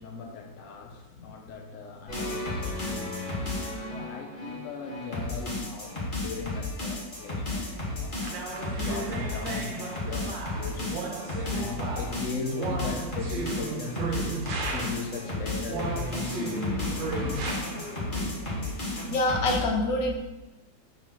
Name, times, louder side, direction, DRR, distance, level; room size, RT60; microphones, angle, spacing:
voice 1, 0.0-3.2 3.9-8.2 8.7-14.2 14.7-16.6 17.2-17.5, left 4 dB, 55° left, 2 dB, 1.1 m, -38 dB
sound 1, 2.1-19.6, left 2 dB, 30° left, 1.9 m, -33 dB
sound 2, 8.2-15.2 15.7-17.6, right 4 dB, 85° right, 1.7 m, -35 dB
voice 2, 19.1-20.2, left 2 dB, 80° left, 2 dB, 1.6 m, -25 dB
5.2 x 4.6 x 5.8 m, 1.1 s
omnidirectional pair, 2.0 m